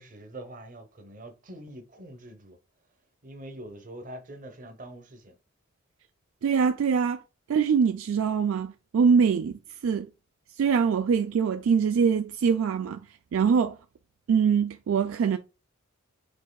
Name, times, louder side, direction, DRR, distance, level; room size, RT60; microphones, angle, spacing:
voice 1, 0.0-2.6 3.2-5.4, right 1 dB, 35° right, 0.8 m, -44 dB
voice 2, 6.4-7.2 7.5-10.1 10.6-13.0 13.3-13.8 14.3-15.4, right 6 dB, 65° right, 0.3 m, -23 dB
5.3 x 3.6 x 2.3 m
head